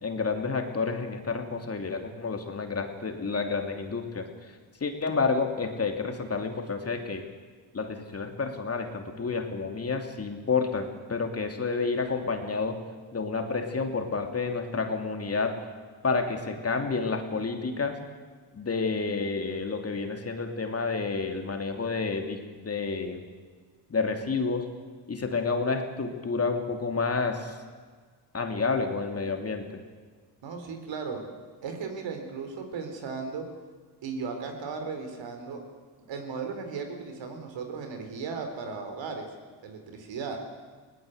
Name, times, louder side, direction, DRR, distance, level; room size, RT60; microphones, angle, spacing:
voice 1, 0.0-7.3 7.7-12.8 13.1-15.7 16.0-18.0 18.5-23.2 23.9-24.7 25.1-27.6 28.3-29.7, left 4 dB, 30° left, 5 dB, 2.9 m, -30 dB
voice 2, 30.4-31.2 31.6-33.5 34.0-35.6 36.1-39.3 39.6-40.4, right 5 dB, 65° right, 5 dB, 4.3 m, -36 dB
20.5 x 18.5 x 8.1 m, 1.5 s
cardioid pair, 85°, 47 cm